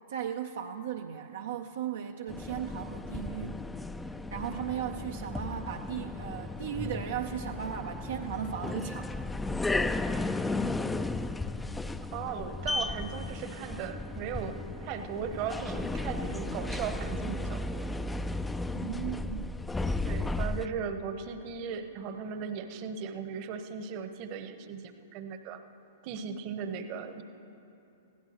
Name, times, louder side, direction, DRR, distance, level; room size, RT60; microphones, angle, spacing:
voice 1, 0.1-3.6 4.3-9.2 18.7-19.7, right 9 dB, 65° right, 4 dB, 0.5 m, -36 dB
sound 1, 2.3-20.7, left 2 dB, 10° left, 0.4 m, -34 dB
voice 2, 12.1-17.9 20.0-25.6 26.0-27.2, right 7 dB, 45° right, 9 dB, 1.0 m, -37 dB
20.5 x 16.0 x 3.0 m, 2.8 s
figure-of-eight pair, 105°, 0 cm